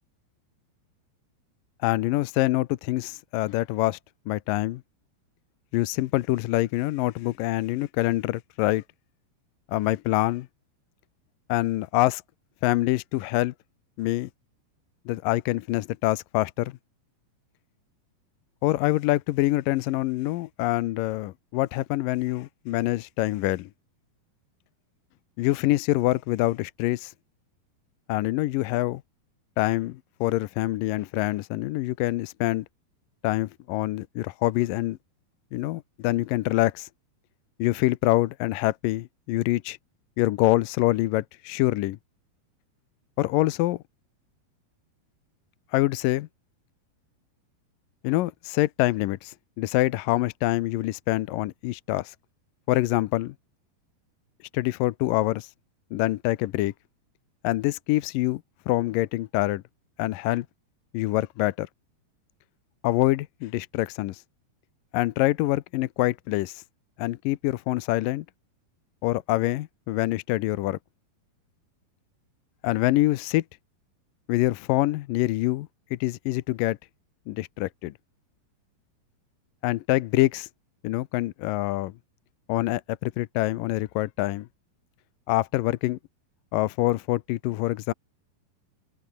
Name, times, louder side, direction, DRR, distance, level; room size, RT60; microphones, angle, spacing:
voice 1, 1.8-4.0 4.3-4.8 5.7-8.8 9.7-10.5 11.5-12.2 12.6-13.5 14.0-14.3 15.1-16.7 18.6-23.7 25.4-27.1 28.1-29.0 29.6-32.7 33.2-35.0 35.5-36.9 37.6-39.8 40.2-42.0 43.2-43.8 45.7-46.3 48.0-52.1 52.7-53.3 54.5-55.5 55.9-56.7 57.4-58.4 58.7-59.6 60.0-60.5 60.9-61.7 62.8-64.2 64.9-66.6 67.0-68.3 69.0-70.8 72.6-73.4 74.3-76.8 77.3-77.9 79.6-80.5 80.8-81.9 82.5-84.5 85.3-86.0 86.5-87.9, left 17 dB, 75° left, 2.1 m, -25 dB
omnidirectional pair, 4.7 m